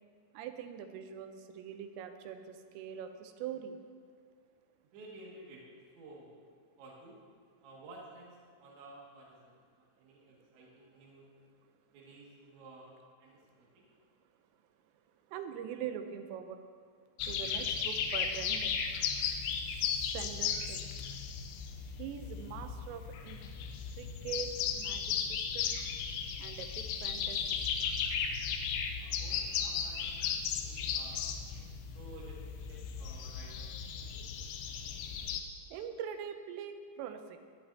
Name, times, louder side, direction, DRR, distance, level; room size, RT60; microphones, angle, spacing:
voice 1, 0.3-3.8 15.3-16.6 17.3-18.8 20.1-20.9 22.0-23.4 23.9-25.1 25.5-25.8 26.4-27.6 35.7-37.4, right 8 dB, 85° right, 7 dB, 3.3 m, -43 dB
voice 2, 4.9-5.6 6.0-6.4 6.8-7.2 7.6-11.4 11.9-12.9 13.2-13.9 29.0-31.3 31.9-34.3, right 2 dB, 65° right, -3 dB, 4.1 m, -54 dB
sound 1, 17.2-35.4, left 7 dB, 80° left, 2.6 m, -36 dB
19.0 x 11.5 x 2.8 m, 2.1 s
omnidirectional pair, 5.9 m